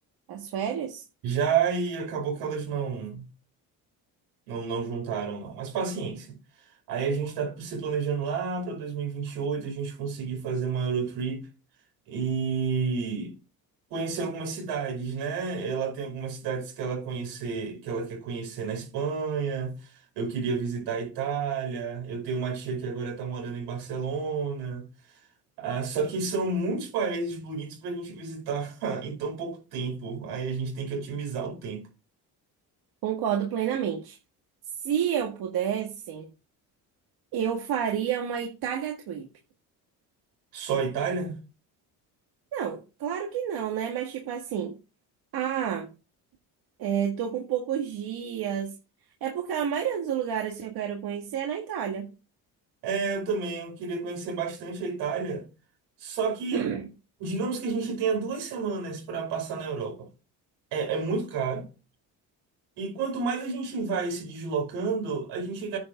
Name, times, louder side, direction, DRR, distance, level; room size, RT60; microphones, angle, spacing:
voice 1, 0.3-1.0 33.0-34.2 34.8-36.3 37.3-39.3 42.5-44.8 45.3-45.9 46.8-48.7 49.2-52.1 56.5-56.9, right 9 dB, 70° right, 1.9 m, -29 dB
voice 2, 1.2-3.3 4.5-6.3 6.9-11.4 12.1-13.4 13.9-24.9 25.6-31.9 40.5-41.4 52.8-55.4 56.0-56.7 57.2-60.1 60.7-61.7 62.8-65.8, right 5 dB, 85° right, 5.4 m, -30 dB
9.6 x 5.7 x 5.1 m
supercardioid pair, 85°, 39 cm